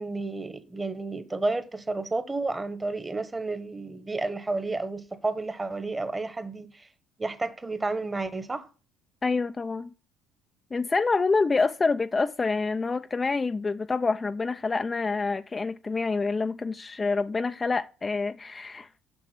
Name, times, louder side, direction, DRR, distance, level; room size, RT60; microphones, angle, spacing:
voice 1, 0.0-6.9 7.2-8.7, right 3 dB, 20° right, 1.2 m, -31 dB
voice 2, 9.2-9.9 10.7-19.0, left 4 dB, 30° left, 0.4 m, -27 dB
7.3 x 6.0 x 5.9 m
hypercardioid pair, 65°, 0 cm